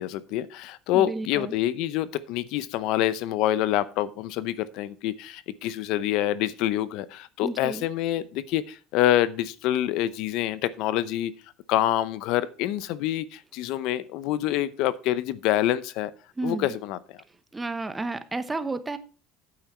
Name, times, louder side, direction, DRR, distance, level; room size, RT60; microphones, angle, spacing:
voice 1, 0.0-11.3 11.7-16.1 16.4-17.0, left 13 dB, 65° left, 16 dB, 0.7 m, -26 dB
voice 2, 0.9-1.5 7.4-7.9 16.4-16.7 17.5-19.0, right 2 dB, 15° right, 11 dB, 1.0 m, -31 dB
8.9 x 8.9 x 4.4 m, 0.36 s
supercardioid pair, 120°, 0 cm